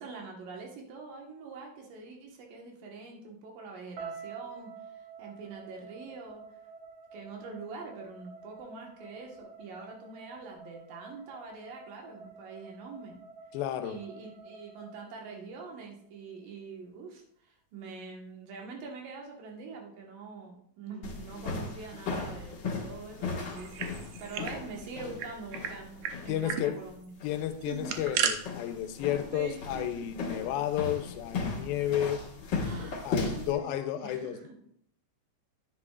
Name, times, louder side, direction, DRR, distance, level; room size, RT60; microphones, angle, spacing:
voice 1, 0.0-4.9 5.2-6.4 7.1-13.1 13.8-23.7 24.0-27.1 27.7-27.9 29.3-29.8 30.4-30.5 32.6-34.5, right 4 dB, 70° right, 1 dB, 2.9 m, -44 dB
sound 1, 4.0-16.1, right 5 dB, 55° right, 2.1 m, -49 dB
voice 2, 13.5-14.0 26.3-26.8 27.2-32.2 32.8-34.5, left 11 dB, 85° left, 10 dB, 2.4 m, -32 dB
sound 2, 21.0-33.5, left 4 dB, 50° left, 1.3 m, -37 dB
sound 3, 23.5-24.6 24.8-24.9 25.2-25.7 26.0-26.2 26.5-26.7 27.6-28.3, right 8 dB, 90° right, 1.6 m, -33 dB
9.9 x 9.4 x 2.4 m, 0.67 s
omnidirectional pair, 4.2 m